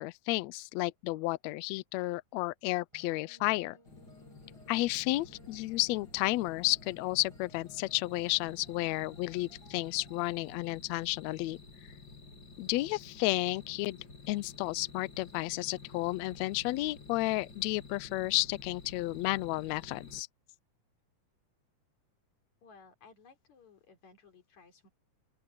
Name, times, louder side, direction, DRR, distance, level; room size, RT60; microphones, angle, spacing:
voice 1, 0.0-3.8 4.7-11.6 12.6-14.0 14.3-20.3, left 20 dB, 85° left, 1.5 m, -32 dB
sound 1, 2.9-10.3, right 1 dB, 10° right, 5.6 m, -61 dB
sound 2, 3.9-20.2, left 3 dB, 35° left, 4.2 m, -52 dB
voice 2, 22.6-24.9, left 5 dB, 60° left, 5.1 m, -58 dB
open air
omnidirectional pair, 3.7 m